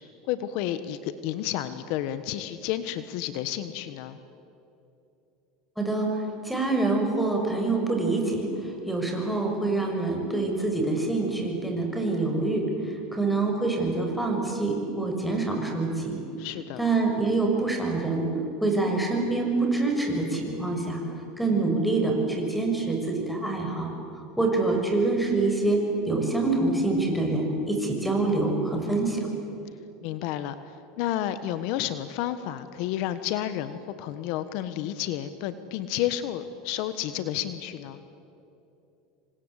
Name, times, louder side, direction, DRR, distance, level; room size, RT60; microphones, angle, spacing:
voice 1, 0.3-4.2 12.8-12.9 16.4-16.8 28.9-29.2 30.0-30.5 31.0-38.0, left 12 dB, 65° left, 12 dB, 1.3 m, -31 dB
voice 2, 5.8-16.2 16.8-18.3 18.6-21.0 21.4-23.9 24.4-29.3, right 3 dB, ahead, 2 dB, 6.6 m, -26 dB
27.5 x 25.0 x 8.3 m, 2.9 s
supercardioid pair, 120°, 0 cm